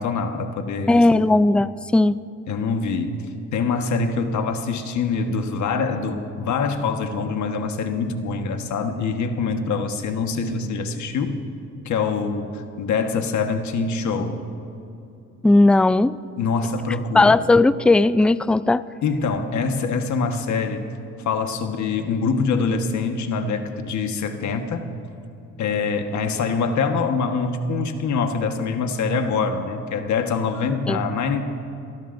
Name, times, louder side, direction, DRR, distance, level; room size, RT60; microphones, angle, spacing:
voice 1, 0.0-1.3 2.5-3.2 3.5-11.4 11.8-14.4 16.4-17.4 19.0-20.8 21.2-24.9 25.6-31.4, left 4 dB, 70° left, 6 dB, 1.4 m, -24 dB
voice 2, 0.9-2.2 15.4-16.2 17.1-18.8 30.9-31.0, left 2 dB, 5° left, 15 dB, 0.3 m, -16 dB
28.0 x 19.0 x 2.6 m, 2.6 s
cardioid pair, 90°, 30 cm